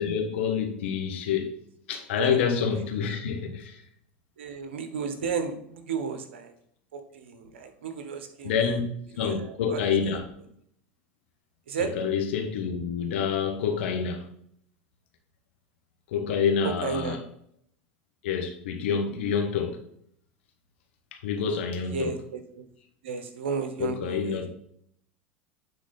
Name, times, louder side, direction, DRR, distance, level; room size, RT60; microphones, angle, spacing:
voice 1, 0.0-1.5 1.9-3.8 8.4-8.8 9.2-10.2 11.8-14.3 16.1-17.2 18.2-19.8 21.1-22.1 23.8-24.5, left 6 dB, 75° left, 4 dB, 1.5 m, -27 dB
voice 2, 4.4-6.5 6.9-8.8 9.2-10.2 11.7-11.9 16.6-17.2 21.9-22.6 23.0-24.4, right 6 dB, 80° right, 7 dB, 1.2 m, -33 dB
9.3 x 4.1 x 4.2 m, 0.67 s
hypercardioid pair, 90°, 6 cm